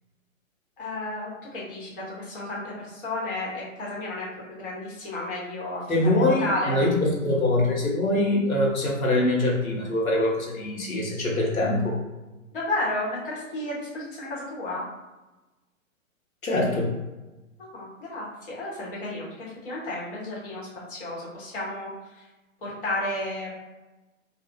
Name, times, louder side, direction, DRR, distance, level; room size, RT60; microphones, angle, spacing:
voice 1, 0.8-4.3 4.6-5.8 6.1-6.8 12.5-14.8 17.6-22.2 22.6-23.5, left 1 dB, 40° left, -5 dB, 1.2 m, -32 dB
voice 2, 5.9-12.0 16.4-16.9, left 1 dB, 85° left, -2 dB, 0.9 m, -23 dB
2.4 x 2.2 x 3.0 m, 1.1 s
figure-of-eight pair, 125°, 41 cm